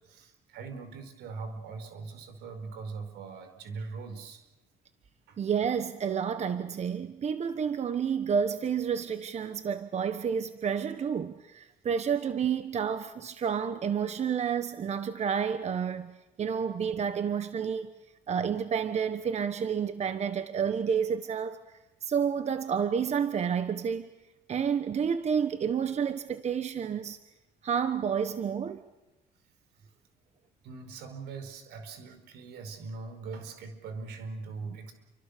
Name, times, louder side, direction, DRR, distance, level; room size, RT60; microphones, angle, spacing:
voice 1, 0.0-4.4 5.3-5.4 29.8-29.9 30.6-34.9, right 4 dB, 80° right, 4.7 m, -41 dB
voice 2, 5.4-16.1 16.4-17.9 18.3-21.6 22.0-24.1 24.5-27.2 27.6-28.8, right 7 dB, 40° right, 1.3 m, -30 dB
29.5 x 24.5 x 6.8 m
cardioid pair, 110°, 17 cm